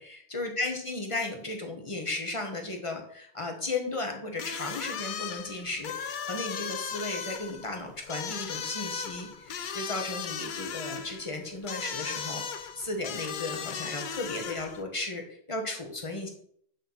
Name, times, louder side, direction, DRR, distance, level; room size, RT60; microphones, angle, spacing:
voice 1, 0.0-16.3, left 2 dB, 30° left, 3 dB, 1.2 m, -35 dB
sound 1, 4.4-14.8, left 7 dB, 55° left, 0.7 m, -37 dB
8.0 x 4.3 x 4.0 m, 0.64 s
omnidirectional pair, 1.1 m